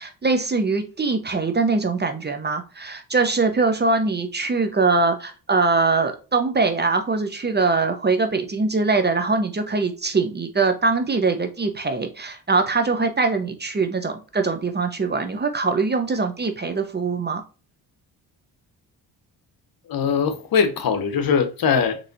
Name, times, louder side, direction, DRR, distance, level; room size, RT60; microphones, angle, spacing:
voice 1, 0.0-17.4, right 3 dB, 25° right, 0.7 m, -22 dB
voice 2, 19.9-22.0, left 6 dB, 50° left, 0.9 m, -21 dB
4.1 x 3.1 x 2.6 m
hypercardioid pair, 45°, 44 cm